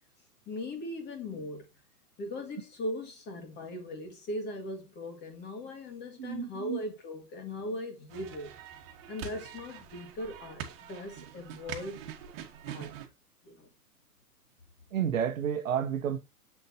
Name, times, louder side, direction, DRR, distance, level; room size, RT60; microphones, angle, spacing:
voice 1, 0.5-1.7 2.2-8.5 9.1-12.1 12.7-13.0 13.4-13.7, left 1 dB, 20° left, 2.5 m, -39 dB
voice 2, 6.2-6.8 14.9-16.2, right 8 dB, 55° right, 1.4 m, -30 dB
sound 1, 8.1-13.1, right 8 dB, 40° right, 1.9 m, -44 dB
7.8 x 6.7 x 3.0 m
hypercardioid pair, 125°, 47 cm